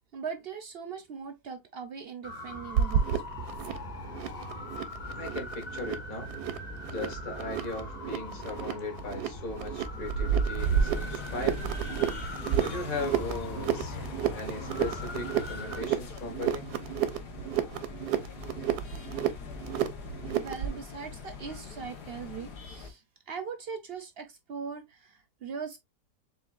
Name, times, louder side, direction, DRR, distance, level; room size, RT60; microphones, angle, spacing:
voice 1, 0.1-3.2 19.9-20.0 20.3-25.8, right 6 dB, 65° right, 0.5 m, -40 dB
sound 1, 2.2-15.8, left 2 dB, 35° left, 0.8 m, -41 dB
sound 2, 2.7-20.8, right 9 dB, 90° right, 1.2 m, -31 dB
voice 2, 5.1-6.3 6.9-11.7 12.6-14.0 14.3-16.7, left 2 dB, 60° left, 1.9 m, -38 dB
sound 3, 10.6-22.9, left 5 dB, 85° left, 1.6 m, -43 dB
6.8 x 2.5 x 2.4 m
omnidirectional pair, 1.7 m